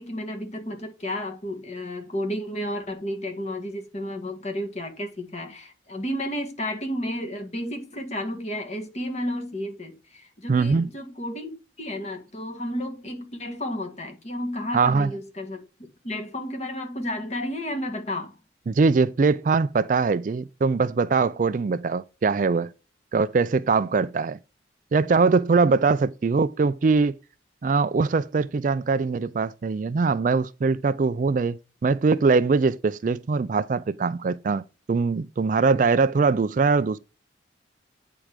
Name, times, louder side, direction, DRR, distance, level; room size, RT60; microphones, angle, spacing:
voice 1, 0.0-11.5 11.8-18.4, left 1 dB, 35° left, 1.8 m, -32 dB
voice 2, 10.5-10.9 14.7-15.1 18.7-22.7 23.1-24.4 24.9-27.2 27.6-34.6 34.9-37.0, right 4 dB, 45° right, 0.3 m, -22 dB
8.8 x 4.6 x 5.0 m
head